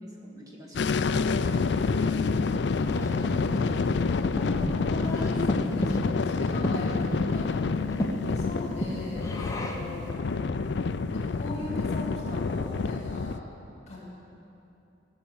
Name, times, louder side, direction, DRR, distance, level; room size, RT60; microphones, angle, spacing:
voice 1, 0.0-2.3, equal, 20° right, -3 dB, 2.0 m, -46 dB
sound 1, 0.7-13.4, left 4 dB, 60° left, 0.4 m, -28 dB
Breathing, 1.5-10.0, equal, 15° left, 1.0 m, -35 dB
voice 2, 2.8-7.5 8.2-10.2 11.1-13.4 13.9-14.0, left 1 dB, 35° left, -4 dB, 2.9 m, -38 dB
17.0 x 6.6 x 8.7 m, 2.8 s
head